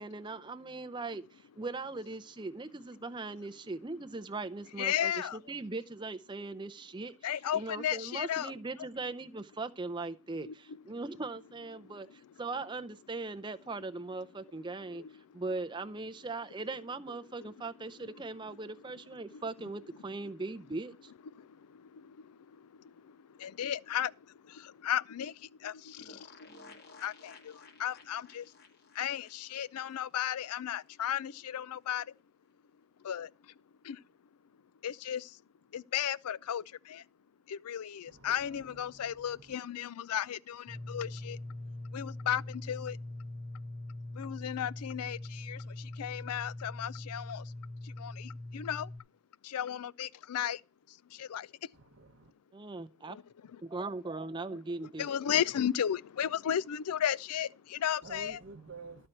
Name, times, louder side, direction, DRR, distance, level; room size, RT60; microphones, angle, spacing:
voice 1, 0.0-5.1 5.5-7.1 7.5-15.0 15.3-21.1 52.5-53.2 53.6-55.1, right 3 dB, 20° right, 0.5 m, -39 dB
voice 2, 4.8-5.4 7.2-8.5 8.8-8.9 10.5-10.8 11.8-12.3 14.6-15.4 17.4-17.6 18.0-18.7 19.3-19.4 21.2-28.6 28.9-32.2 33.0-34.1 34.8-35.4 35.7-37.1 37.5-41.4 41.9-43.0 44.1-47.5 47.8-48.9 49.4-50.6 50.9-51.7 53.1-53.6 54.5-58.4, left 9 dB, 90° left, 0.4 m, -36 dB
sound 1, 26.0-30.6 30.9-31.0 31.2-31.3, left 3 dB, 45° left, 1.3 m, -56 dB
voice 3, 38.1-39.3 51.8-52.3 58.0-59.1, right 3 dB, 55° right, 0.8 m, -50 dB
sound 2, 40.7-49.0, left 1 dB, 20° left, 1.3 m, -42 dB
12.5 x 4.4 x 7.7 m
head